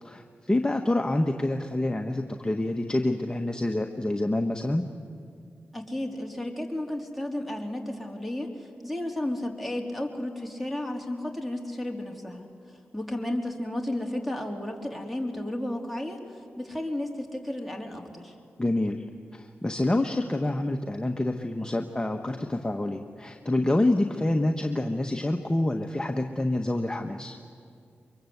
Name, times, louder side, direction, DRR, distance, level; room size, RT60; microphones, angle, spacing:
voice 1, 0.0-4.9 18.6-19.0 19.3-27.4, left 1 dB, 20° left, 4 dB, 1.4 m, -27 dB
voice 2, 5.7-12.5 12.9-16.2 16.6-18.3, left 1 dB, ahead, 2 dB, 3.8 m, -33 dB
24.0 x 23.0 x 8.2 m, 2.3 s
cardioid pair, 45°, 4 cm